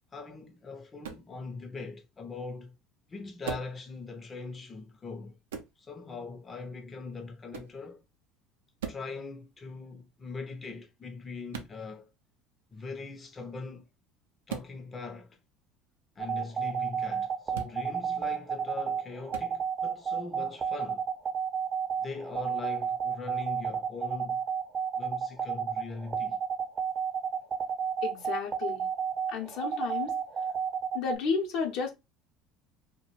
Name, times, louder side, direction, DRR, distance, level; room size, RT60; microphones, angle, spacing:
voice 1, 0.1-2.7 3.1-5.4 5.8-8.0 8.9-12.1 12.7-13.9 14.5-15.4 16.2-21.0 22.0-24.4 25.0-26.4, left 4 dB, 30° left, 0.5 m, -41 dB
sound 1, 1.0-1.3 3.4-3.8 5.5-5.8 7.5-7.8 8.8-9.1 11.5-11.8 14.5-14.7 17.5-17.8 19.3-19.5, right 7 dB, 85° right, 0.4 m, -39 dB
sound 2, 16.2-31.2, right 7 dB, 35° right, 0.5 m, -31 dB
voice 2, 28.0-28.9 29.3-30.2 30.9-31.9, left 5 dB, 65° left, 0.7 m, -32 dB
2.3 x 2.1 x 3.0 m
hypercardioid pair, 75°, 0 cm